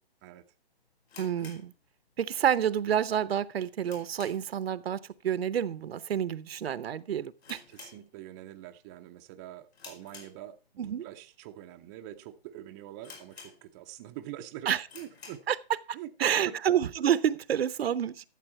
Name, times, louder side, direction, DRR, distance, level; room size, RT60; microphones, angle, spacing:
sound 1, 1.0-2.4 2.7-2.8 3.3-4.7 4.9-5.2 5.5-5.6 6.3-6.6 6.9-7.0 7.4-8.5 8.9-9.2 9.7-10.8 11.4-11.5 12.1-12.2 12.5-12.6 13.0-14.0 14.3-14.4 14.8-15.5, left 4 dB, 80° left, 4.8 m, -51 dB
voice 1, 1.2-1.7 2.2-7.6 10.8-11.0 14.7-14.8 15.5-15.6 15.9-18.3, right 9 dB, 75° right, 0.8 m, -29 dB
voice 2, 7.7-10.6 10.8-15.4 15.9-16.6, right 13 dB, 20° right, 0.5 m, -44 dB
13.0 x 7.4 x 4.4 m
hypercardioid pair, 150°, 31 cm